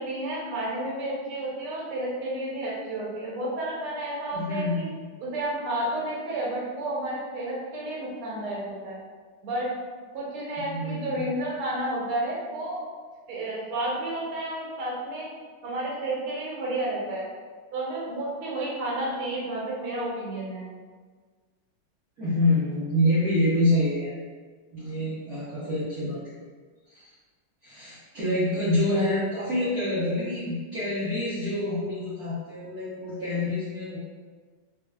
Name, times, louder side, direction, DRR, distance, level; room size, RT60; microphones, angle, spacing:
voice 1, 0.0-4.9 5.2-9.0 9.4-9.7 10.1-12.8 13.3-15.3 15.6-17.2 17.7-20.7, right 1 dB, 85° right, -4 dB, 1.8 m, -31 dB
voice 2, 4.3-4.9 10.7-11.3 22.2-24.1 24.7-26.4 26.9-27.1 27.6-34.0, left 1 dB, 55° right, -11 dB, 1.3 m, -27 dB
4.2 x 2.7 x 2.3 m, 1.5 s
omnidirectional pair, 2.4 m